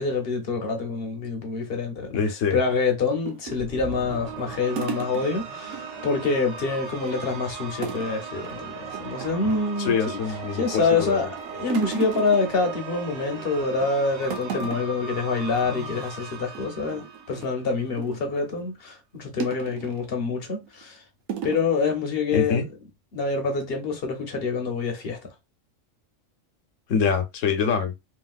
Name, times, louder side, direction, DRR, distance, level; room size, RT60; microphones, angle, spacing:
voice 1, 0.0-2.2 2.5-10.2 10.5-21.0 21.4-22.6 23.1-25.2, left 4 dB, 50° left, 0.9 m, -26 dB
voice 2, 2.1-2.6 9.4-9.5 9.8-11.3 15.7-16.0 22.3-22.7 26.9-27.9, left 6 dB, 75° left, 1.1 m, -25 dB
sound 1, 3.2-5.8 6.1-6.3 6.6-7.3 7.8-8.2 8.4-8.6 8.9-9.8 10.3-10.8 11.1-13.3 13.7-14.0 14.2-15.1 15.4-15.6 15.9-16.1 16.5-18.3 19.4-20.1 20.7-20.8 21.3-21.7, right 7 dB, 90° right, 1.1 m, -36 dB
sound 2, 3.6-17.9, right 5 dB, 50° right, 0.5 m, -38 dB
3.0 x 2.8 x 2.3 m
omnidirectional pair, 1.3 m